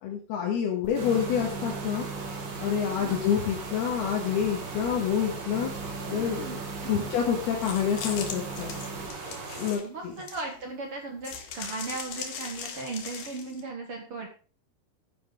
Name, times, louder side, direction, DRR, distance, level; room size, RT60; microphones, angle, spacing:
voice 1, 0.0-2.1 2.6-5.7 6.1-6.6 6.9-8.7 9.6-10.1, left 8 dB, 90° left, -1 dB, 3.6 m, -28 dB
sound 1, 0.8-9.1, right 4 dB, 35° right, 2.0 m, -40 dB
sound 2, 0.9-9.7, right 3 dB, 80° right, 4.7 m, -39 dB
voice 2, 6.1-7.1 9.8-14.3, right 3 dB, 50° right, 2 dB, 1.7 m, -37 dB
sound 3, 7.6-10.7 11.2-13.6, left 6 dB, 60° left, 2.8 m, -39 dB
10.5 x 10.5 x 3.7 m, 0.39 s
omnidirectional pair, 4.4 m